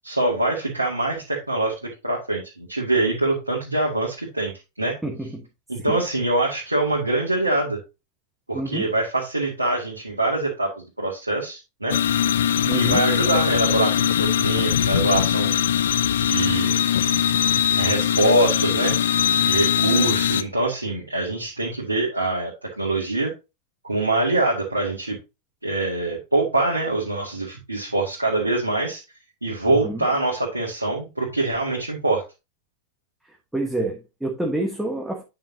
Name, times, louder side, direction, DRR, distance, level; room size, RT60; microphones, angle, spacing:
voice 1, 0.0-5.0 5.7-7.8 8.5-12.0 12.7-15.5 16.2-16.8 17.7-19.0 19.4-22.5 22.8-23.3 23.8-25.2 25.6-29.0 29.4-32.2, right 2 dB, 85° right, 2.1 m, -24 dB
voice 2, 5.0-5.5 5.9-6.0 8.5-8.9 12.7-13.0 29.7-30.1 33.3-35.2, right 1 dB, 5° right, 1.4 m, -28 dB
sound 1, 11.9-20.4, left 9 dB, 65° left, 0.5 m, -21 dB
9.0 x 5.8 x 2.8 m
figure-of-eight pair, 90°, 0 cm